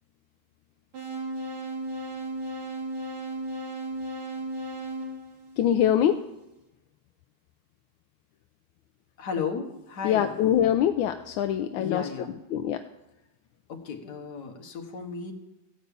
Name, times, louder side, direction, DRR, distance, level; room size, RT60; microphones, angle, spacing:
sound 1, 0.9-6.1, right 1 dB, 80° right, 3.6 m, -35 dB
voice 1, 5.6-6.2 10.0-12.0 12.5-12.8, left 10 dB, 80° left, 7 dB, 1.4 m, -23 dB
voice 2, 9.2-10.4 11.8-12.4 13.7-15.3, left 6 dB, 50° left, 3 dB, 1.8 m, -34 dB
15.0 x 5.3 x 8.3 m, 0.93 s
omnidirectional pair, 2.3 m